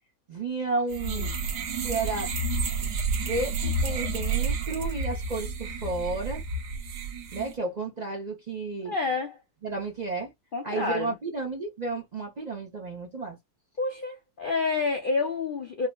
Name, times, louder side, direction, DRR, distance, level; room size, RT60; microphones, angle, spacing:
voice 1, 0.3-1.3 1.8-2.3 3.2-6.4 7.3-8.9 9.6-10.3 10.6-13.4, right 3 dB, 40° right, 0.6 m, -32 dB
sound 1, 0.9-7.5, right 3 dB, 90° right, 1.4 m, -30 dB
voice 2, 8.8-9.4 10.5-11.1 13.8-15.9, left 4 dB, 60° left, 0.5 m, -29 dB
4.8 x 2.1 x 2.2 m
omnidirectional pair, 1.7 m